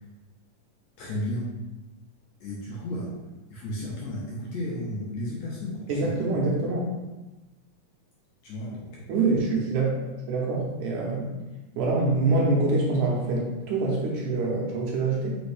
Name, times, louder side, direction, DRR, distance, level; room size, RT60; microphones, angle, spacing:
voice 1, 1.0-1.5 2.4-3.1 3.5-6.1 8.4-9.1, left 1 dB, 75° left, -5 dB, 1.7 m, -33 dB
voice 2, 5.9-6.9 9.1-10.0 10.3-11.3 11.8-15.4, right 3 dB, 75° right, -2 dB, 2.0 m, -25 dB
5.1 x 2.7 x 3.2 m, 1.1 s
omnidirectional pair, 3.6 m